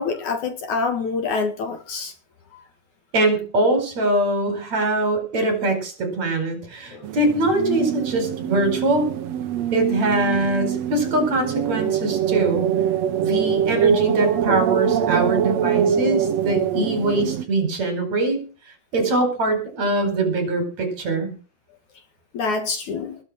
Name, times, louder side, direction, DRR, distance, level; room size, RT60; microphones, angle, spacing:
voice 1, 0.0-2.1 2.5-2.6 6.9-7.1 22.3-23.2, left 4 dB, 60° left, 7 dB, 3.0 m, -26 dB
voice 2, 3.1-9.1 9.7-12.7 13.2-18.4 18.9-21.3, right 2 dB, 45° right, 7 dB, 5.7 m, -22 dB
sound 1, 7.0-17.5, right 8 dB, 60° right, 1.8 m, -23 dB
20.5 x 8.5 x 6.3 m, 0.38 s
omnidirectional pair, 4.3 m